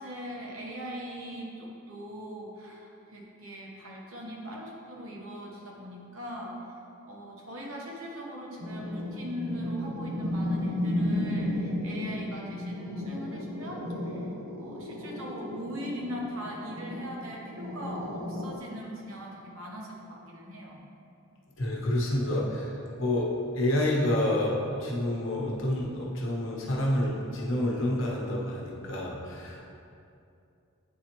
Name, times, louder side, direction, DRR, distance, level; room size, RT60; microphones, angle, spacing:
voice 1, 0.0-6.6 7.0-20.8, equal, 65° right, -2 dB, 1.1 m, -40 dB
sound 1, 8.6-18.6, left 1 dB, 85° right, 0.7 m, -34 dB
voice 2, 21.6-29.7, left 1 dB, 60° left, -3 dB, 1.0 m, -28 dB
8.4 x 4.2 x 3.0 m, 2.5 s
head